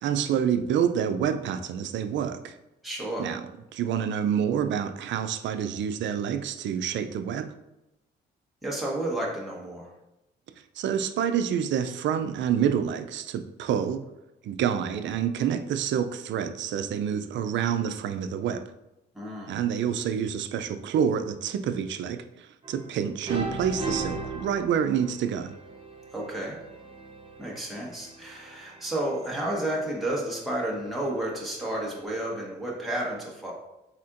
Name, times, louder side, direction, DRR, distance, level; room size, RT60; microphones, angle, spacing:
voice 1, 0.0-2.5 3.2-3.4 3.7-7.5 10.8-14.0 14.4-18.6 19.5-25.5, right 8 dB, 70° right, 9 dB, 0.4 m, -27 dB
voice 2, 2.8-3.3 8.6-9.9 19.1-19.6 26.1-26.6 27.4-33.5, right 1 dB, ahead, -4 dB, 1.3 m, -31 dB
sound 1, 22.6-23.0 23.3-32.0, right 3 dB, 25° right, 0.9 m, -39 dB
4.3 x 4.2 x 2.5 m, 0.92 s
cardioid pair, 90°, 20 cm